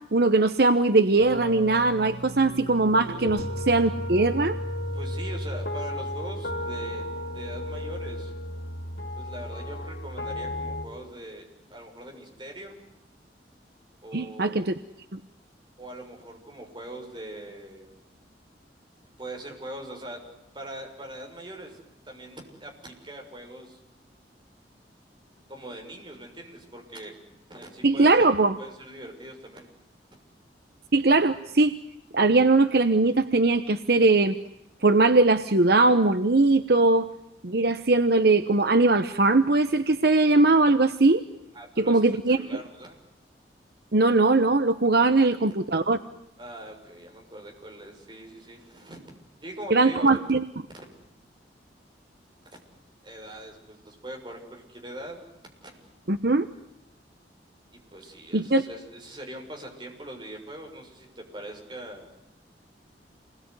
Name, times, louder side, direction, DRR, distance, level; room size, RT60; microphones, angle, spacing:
voice 1, 0.1-4.6 14.1-14.7 15.1-15.2 27.8-28.6 30.9-31.7 32.1-34.4 34.8-37.1 37.4-41.2 41.8-42.4 43.9-46.0 49.7-50.4 56.1-56.5 58.3-58.6, right 3 dB, 60° right, 10 dB, 1.0 m, -20 dB
sound 1, 1.2-10.9, left 1 dB, 65° left, 2.8 m, -34 dB
voice 2, 4.9-8.3 9.2-12.8 14.0-14.7 15.8-18.0 19.2-20.2 20.5-21.8 22.0-23.8 25.5-27.1 27.5-28.3 28.6-29.6 41.5-43.0 46.4-49.0 49.4-50.2 50.7-50.9 53.0-55.2 55.6-55.8 57.7-62.0, right 1 dB, 25° right, 2 dB, 6.7 m, -42 dB
28.5 x 21.0 x 9.7 m, 0.83 s
head